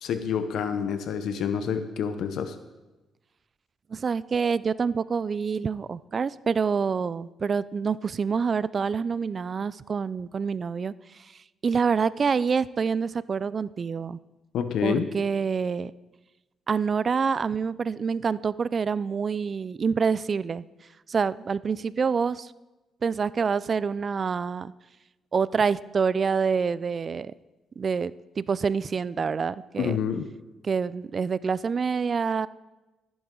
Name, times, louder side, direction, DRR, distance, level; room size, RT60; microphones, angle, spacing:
voice 1, 0.0-2.5 14.5-15.1 29.8-30.3, left 7 dB, 75° left, 9 dB, 0.8 m, -28 dB
voice 2, 3.9-11.3 11.6-14.2 14.8-15.9 16.7-20.6 21.1-22.5 23.0-24.7 25.3-27.3 27.8-30.0 30.6-32.5, right 5 dB, 40° right, 18 dB, 0.3 m, -27 dB
14.0 x 10.0 x 3.8 m, 1.1 s
cardioid pair, 90°, 0 cm